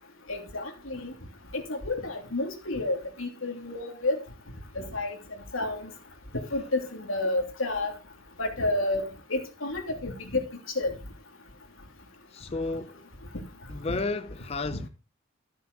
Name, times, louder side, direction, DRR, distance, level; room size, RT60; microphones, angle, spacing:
voice 1, 0.3-1.1 1.5-4.2 4.7-5.2 5.5-5.9 6.5-7.9 8.4-10.4 10.7-10.9 13.9-14.0 14.7-14.9, left 2 dB, 80° left, 2.9 m, -30 dB
voice 2, 12.3-13.0 13.7-14.9, left 3 dB, 30° left, 0.5 m, -32 dB
13.5 x 6.8 x 5.3 m
head